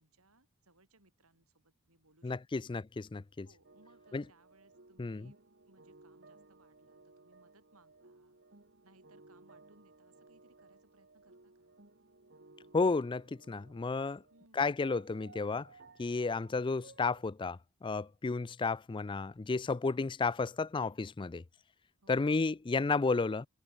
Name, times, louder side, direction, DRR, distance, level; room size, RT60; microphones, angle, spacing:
voice 1, 0.0-2.6 3.4-8.4 8.8-11.7 14.3-14.8 22.0-22.5, right 2 dB, 75° right, 6.5 m, -67 dB
voice 2, 2.2-3.5 4.1-4.2 5.0-5.3 12.7-14.2 14.5-15.7 16.0-21.4 22.1-23.5, left 4 dB, 20° left, 0.4 m, -32 dB
sound 1, 3.6-14.5 14.8-17.2, right 3 dB, 50° right, 2.3 m, -60 dB
head